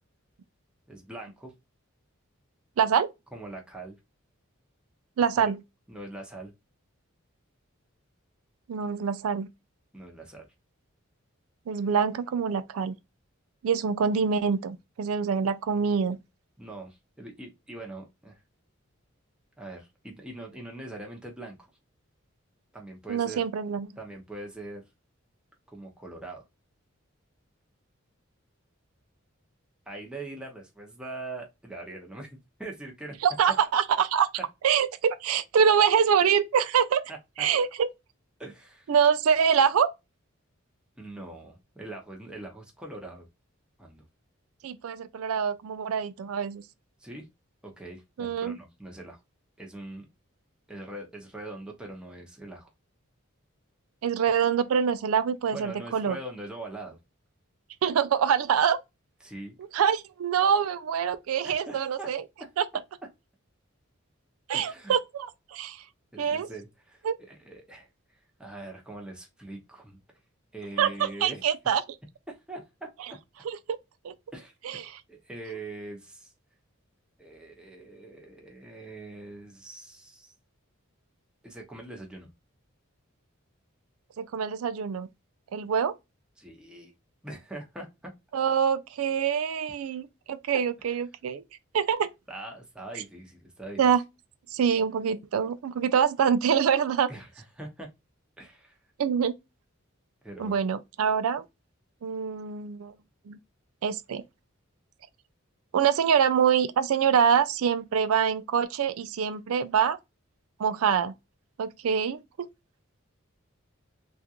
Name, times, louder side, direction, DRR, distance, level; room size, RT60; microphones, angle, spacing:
voice 1, 0.9-1.5 3.3-4.0 5.4-5.5 5.9-6.5 9.9-10.5 16.6-18.4 19.6-21.7 22.7-23.4 24.0-24.8 25.7-26.4 29.9-33.2 37.1-37.5 38.4-38.9 41.0-43.3 43.8-44.0 47.0-47.3 47.6-49.2 49.6-50.1 50.7-52.7 55.5-57.0 59.2-59.6 61.4-62.1 64.5-64.9 66.1-67.9 68.4-70.0 70.5-71.4 72.3-72.9 74.3-74.5 75.1-76.3 77.2-80.3 81.4-82.3 86.4-86.9 87.2-88.1 92.3-93.9 97.1-97.9 98.4-98.8 100.2-100.6, right 2 dB, 5° right, 0.8 m, -42 dB
voice 2, 2.8-3.1 5.2-5.6 8.7-9.5 11.7-12.9 13.6-16.2 23.1-23.9 33.2-34.3 34.6-37.0 37.4-37.9 38.9-39.9 44.6-46.6 48.2-48.6 54.0-56.2 57.8-58.8 59.7-62.2 62.6-62.7 64.5-65.8 66.2-66.5 67.0-67.1 70.8-71.8 73.5-73.8 74.0-74.1 74.6-74.8 84.2-85.1 85.5-85.9 88.3-91.4 91.7-92.1 93.8-94.0 94.5-97.1 99.0-99.3 100.4-101.4 102.0-102.9 103.3-103.4 103.8-104.2 105.7-110.0 110.6-111.1 111.6-112.2, right 7 dB, 85° right, 0.4 m, -25 dB
3.5 x 2.4 x 2.8 m
head